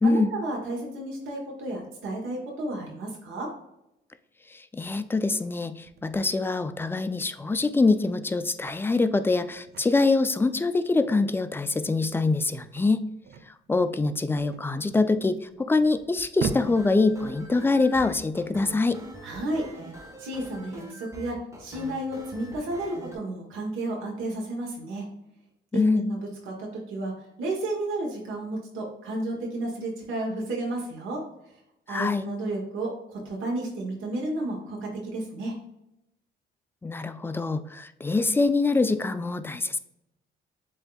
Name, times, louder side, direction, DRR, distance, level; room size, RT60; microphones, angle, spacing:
voice 1, 0.0-3.5 19.2-19.8 20.2-25.1 25.7-26.2 26.5-27.1 27.4-31.2 31.9-35.5, right 2 dB, 90° right, -1 dB, 1.1 m, -32 dB
voice 2, 4.5-13.1 13.5-19.0 25.7-26.0 31.9-32.3 36.8-39.8, left 3 dB, 10° left, 11 dB, 0.3 m, -24 dB
sound 1, 5.8-19.0, right 6 dB, 55° right, 0.5 m, -42 dB
sound 2, 16.5-23.2, right 1 dB, 15° right, 1.0 m, -43 dB
7.6 x 2.7 x 2.3 m, 0.84 s
cardioid pair, 90°, 20 cm